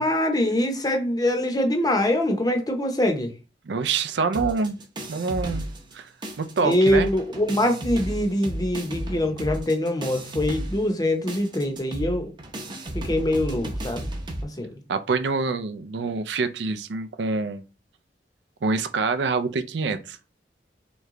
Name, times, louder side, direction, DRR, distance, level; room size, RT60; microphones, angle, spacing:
voice 1, 0.0-3.3 6.6-12.3 12.9-14.1 14.4-14.8, left 1 dB, 20° left, 0.7 m, -24 dB
voice 2, 3.7-4.8 5.1-5.7 5.9-6.1 6.4-7.1 14.9-17.6 18.6-20.2, right 4 dB, 80° right, 0.4 m, -26 dB
sound 1, 4.3-6.0 6.2-14.4, right 1 dB, 25° right, 0.7 m, -33 dB
3.3 x 3.0 x 3.6 m
head